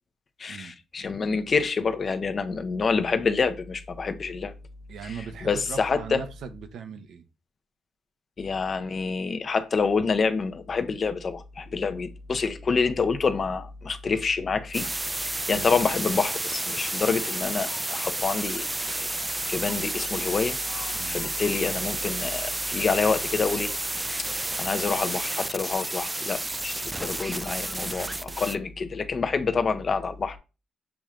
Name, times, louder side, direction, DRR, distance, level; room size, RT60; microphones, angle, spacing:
voice 1, 0.4-4.5 5.0-5.1 5.4-6.2 8.4-14.9 15.2-18.6 18.9-19.1 19.5-20.6 20.8-23.7 24.2-30.4, left 5 dB, 40° left, 0.6 m, -27 dB
voice 2, 4.9-7.2 15.5-15.8 20.9-21.2 27.8-28.4, right 7 dB, 70° right, 0.7 m, -39 dB
sound 1, 14.7-28.6, right 2 dB, 15° right, 0.3 m, -31 dB
sound 2, 16.0-28.1, left 6 dB, 85° left, 0.9 m, -50 dB
7.1 x 3.1 x 2.4 m
cardioid pair, 90°, 0 cm